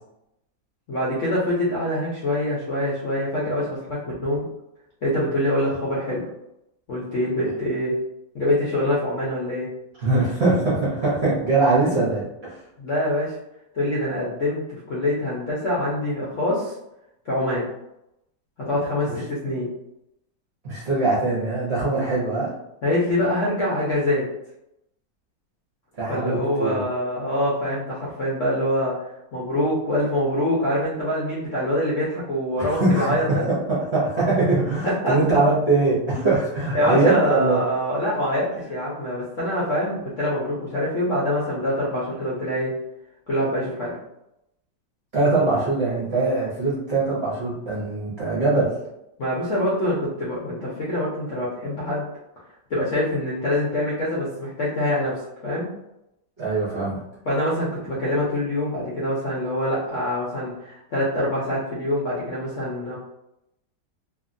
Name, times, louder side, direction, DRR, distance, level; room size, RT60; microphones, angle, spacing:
voice 1, 0.9-4.4 5.0-6.2 6.9-7.9 8.3-9.7 12.8-13.4 13.7-16.7 17.3-17.7 18.6-19.7 22.8-24.2 26.1-29.0 29.3-33.5 34.8-35.2 36.2-36.3 36.7-42.8 43.3-43.9 49.2-52.1 52.7-55.7 57.2-63.0, left 1 dB, 65° left, -6 dB, 0.8 m, -25 dB
voice 2, 10.0-12.6 19.0-19.2 20.6-22.5 26.0-26.8 32.6-37.6 45.1-48.7 56.4-57.0, right 3 dB, 50° right, -8 dB, 0.8 m, -22 dB
2.8 x 2.5 x 2.5 m, 0.86 s
omnidirectional pair, 2.0 m